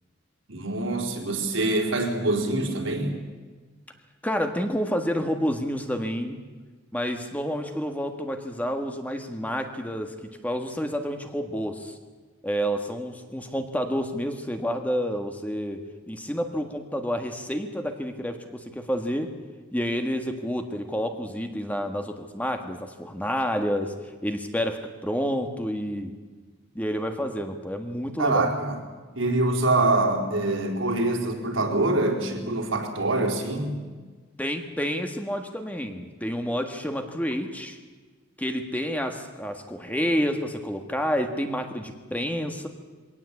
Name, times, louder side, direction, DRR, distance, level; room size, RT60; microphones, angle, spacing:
voice 1, 0.5-3.2 28.2-28.8 29.1-33.8, right 2 dB, 85° right, 2 dB, 4.3 m, -25 dB
voice 2, 4.2-6.4 6.9-10.1 10.4-11.9 12.4-19.3 19.7-26.1 26.8-28.5 34.4-37.8 38.4-42.7, equal, 10° left, 5 dB, 1.6 m, -29 dB
23.0 x 18.0 x 8.4 m, 1.4 s
head